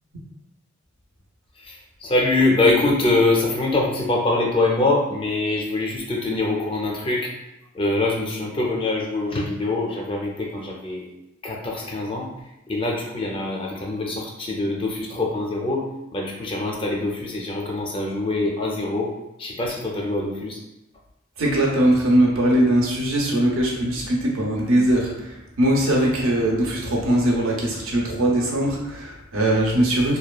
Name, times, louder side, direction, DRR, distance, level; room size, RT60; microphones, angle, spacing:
voice 1, 1.6-7.3 7.7-11.1 11.4-12.3 12.7-15.8 16.1-19.1 19.4-20.6, left 2 dB, 25° left, -1 dB, 0.4 m, -24 dB
voice 2, 21.4-25.3 25.6-30.2, right 1 dB, 80° right, -2 dB, 0.6 m, -20 dB
2.8 x 2.2 x 2.3 m, 0.90 s
head